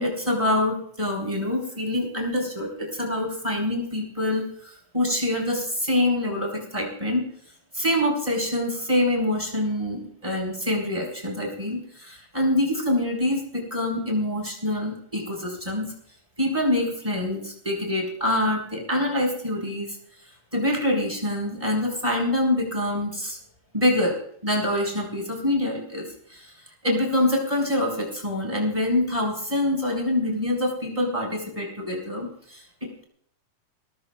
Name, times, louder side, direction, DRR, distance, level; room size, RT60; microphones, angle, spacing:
voice 1, 0.0-7.2 7.7-15.9 16.4-20.0 20.5-23.4 23.7-26.5 26.8-33.0, left 1 dB, 10° right, -1 dB, 4.8 m, -25 dB
23.5 x 18.5 x 2.4 m, 0.64 s
omnidirectional pair, 3.6 m